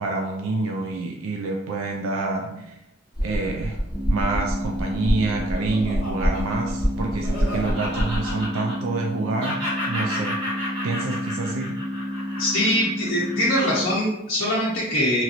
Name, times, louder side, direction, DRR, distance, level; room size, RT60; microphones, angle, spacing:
voice 1, 0.0-2.7 3.2-3.8 4.1-9.6 9.9-10.4 10.8-11.7, right 3 dB, 75° right, 1 dB, 0.3 m, -27 dB
sound 1, 3.1-8.5, equal, 5° right, 0.7 m, -26 dB
sound 2, 3.9-13.9, equal, 15° left, 1.2 m, -31 dB
Laughter, 5.0-9.1 9.4-13.9, left 1 dB, 55° right, 1.3 m, -33 dB
voice 2, 12.4-15.2, equal, 45° left, -7 dB, 0.6 m, -23 dB
3.0 x 2.8 x 2.4 m, 0.88 s
head